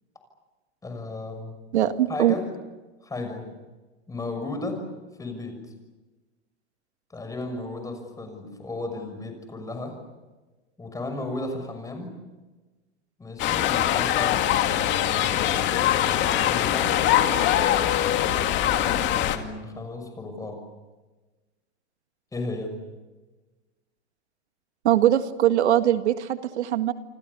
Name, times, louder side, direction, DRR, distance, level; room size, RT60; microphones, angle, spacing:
voice 1, 0.8-1.5 2.1-2.5 3.0-3.5 4.1-4.9 5.2-5.6 7.1-10.0 10.8-12.2 13.2-14.5 15.1-17.2 18.8-20.6 22.3-22.7, left 2 dB, 10° left, 6 dB, 6.4 m, -35 dB
voice 2, 1.7-2.4 24.8-26.9, right 12 dB, 85° right, 8 dB, 1.9 m, -21 dB
sound 1, 13.4-19.4, left 11 dB, 35° left, 2.4 m, -22 dB
28.5 x 25.5 x 7.0 m, 1.2 s
supercardioid pair, 140°, 33 cm